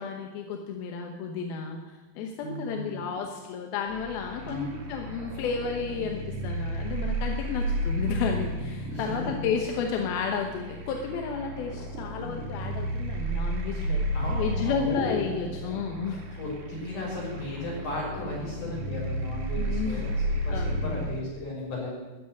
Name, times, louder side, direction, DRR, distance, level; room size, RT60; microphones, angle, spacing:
voice 1, 0.0-16.2 19.5-20.1 20.5-21.1, left 6 dB, 90° left, 3 dB, 2.9 m, -32 dB
voice 2, 2.4-3.0 4.4-4.7 8.9-9.0 14.1-15.2 16.4-21.9, left 2 dB, 60° left, -5 dB, 7.5 m, -35 dB
sound 1, 3.9-21.2, right 1 dB, 70° right, 3.8 m, -33 dB
14.0 x 8.1 x 9.6 m, 1.2 s
omnidirectional pair, 4.2 m